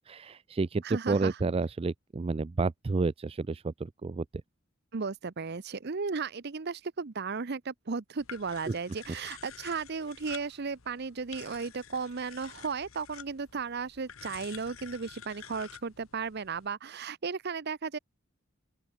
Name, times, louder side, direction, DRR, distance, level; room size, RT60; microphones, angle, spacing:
voice 1, 0.0-4.2 8.7-8.8, right 3 dB, 30° right, 0.4 m, -30 dB
voice 2, 0.8-1.4 4.9-18.0, right 5 dB, 50° right, 0.7 m, -35 dB
sound 1, 8.2-16.7, left 8 dB, 80° left, 1.3 m, -50 dB
open air
head